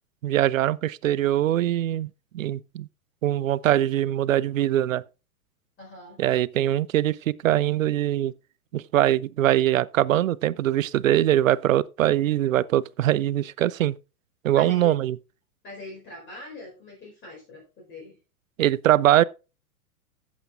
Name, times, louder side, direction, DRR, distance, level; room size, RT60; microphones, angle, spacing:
voice 1, 0.2-2.9 3.2-5.0 6.2-8.3 8.7-14.0 14.4-15.2 18.6-19.2, right 13 dB, 60° right, 0.6 m, -22 dB
voice 2, 5.8-6.2 14.6-14.9 15.6-18.1, left 2 dB, 25° left, 4.5 m, -42 dB
14.5 x 8.2 x 2.5 m
figure-of-eight pair, 110°, 44 cm